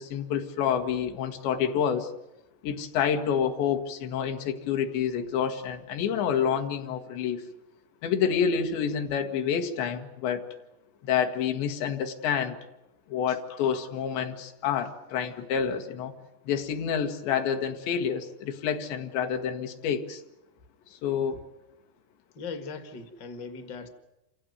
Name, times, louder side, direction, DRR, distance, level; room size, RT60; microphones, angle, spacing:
voice 1, 0.0-2.1 2.6-7.4 8.0-10.5 11.0-12.6 13.1-16.1 16.5-20.2 20.9-21.4, left 7 dB, 80° left, 5 dB, 3.9 m, -28 dB
voice 2, 22.3-23.9, left 4 dB, 55° left, 8 dB, 1.2 m, -39 dB
28.0 x 16.0 x 9.4 m, 0.95 s
omnidirectional pair, 4.9 m